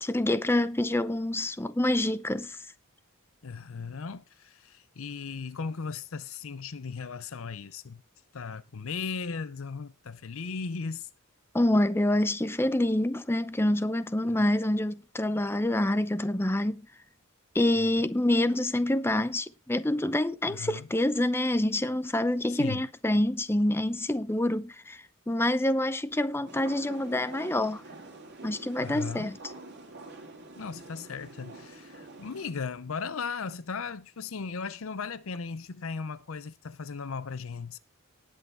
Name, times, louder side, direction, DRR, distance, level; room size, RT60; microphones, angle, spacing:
voice 1, 0.0-2.6 11.5-16.9 17.5-27.8 28.4-29.4, left 1 dB, 10° left, 0.6 m, -27 dB
voice 2, 3.4-8.0 8.3-11.1 14.3-14.4 17.8-17.9 20.5-20.9 22.5-22.8 28.8-29.3 30.6-37.8, left 5 dB, 70° left, 0.6 m, -37 dB
sound 1, 26.5-32.5, right 2 dB, 50° right, 3.2 m, -46 dB
19.0 x 6.4 x 3.5 m
head